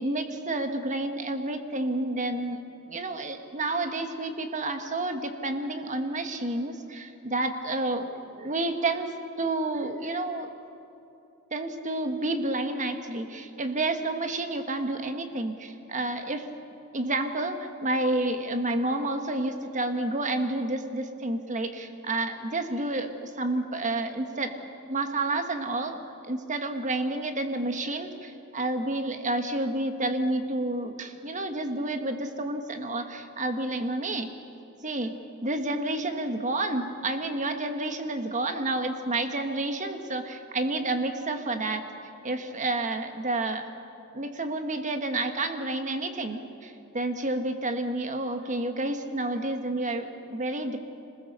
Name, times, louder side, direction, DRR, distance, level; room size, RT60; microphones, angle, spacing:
voice 1, 0.0-2.6 2.9-9.1 9.4-10.5 11.5-16.4 16.9-24.5 24.9-26.0 26.2-34.3 34.8-35.1 35.4-41.8 42.2-43.7 44.1-50.8, right 2 dB, 35° right, 6 dB, 1.5 m, -30 dB
26.0 x 21.0 x 6.7 m, 2.8 s
head